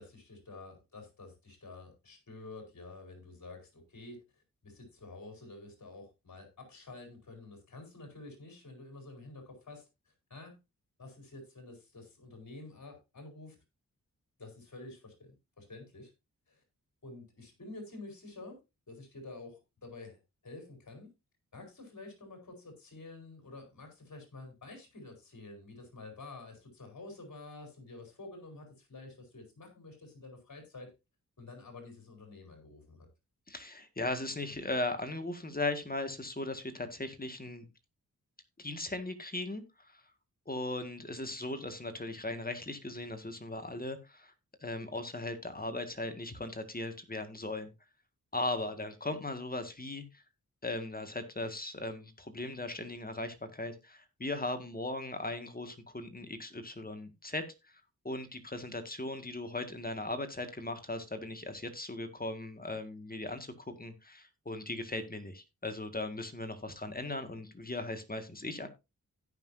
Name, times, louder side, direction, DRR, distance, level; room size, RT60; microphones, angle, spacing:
voice 1, 0.0-4.2 4.6-10.6 11.0-13.6 14.4-16.1 16.5-16.6 17.0-18.6 18.9-21.1 21.5-30.9 31.4-33.1, left 2 dB, 50° left, 4 dB, 4.5 m, -49 dB
voice 2, 33.5-37.7 38.6-40.0 40.5-44.3 44.6-47.7 48.3-50.2 50.6-68.7, left 2 dB, 25° left, 8 dB, 1.9 m, -38 dB
16.5 x 5.9 x 2.7 m, 0.24 s
cardioid pair, 50°, 36 cm